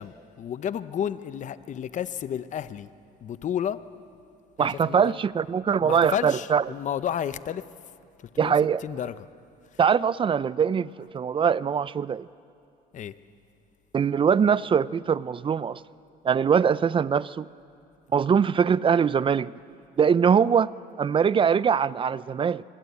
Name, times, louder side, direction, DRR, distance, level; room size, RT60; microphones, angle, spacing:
voice 1, 0.0-2.9 3.2-3.8 4.6-5.1 5.8-7.6 8.3-8.5 8.8-9.3 12.9-13.1, left 9 dB, 45° left, 0.8 m, -31 dB
voice 2, 4.6-6.6 8.4-8.8 9.8-12.3 13.9-15.8 16.2-17.5 18.1-19.5 20.0-20.7 21.0-22.6, right 7 dB, 30° right, 0.5 m, -22 dB
25.5 x 22.0 x 8.3 m
cardioid pair, 110°, 17 cm